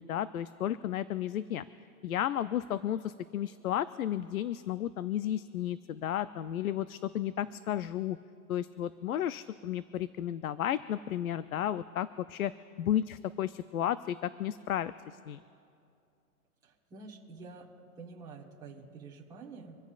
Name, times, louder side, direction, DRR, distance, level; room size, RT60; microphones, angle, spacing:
voice 1, 0.0-1.6 2.0-8.2 8.5-12.5 12.8-14.9 15.3-15.4, left 11 dB, 65° left, 14 dB, 0.6 m, -33 dB
voice 2, 16.6-17.7 18.0-19.8, right 4 dB, 10° right, -4 dB, 1.3 m, -48 dB
26.5 x 14.5 x 2.5 m, 2.5 s
hypercardioid pair, 170°, 45 cm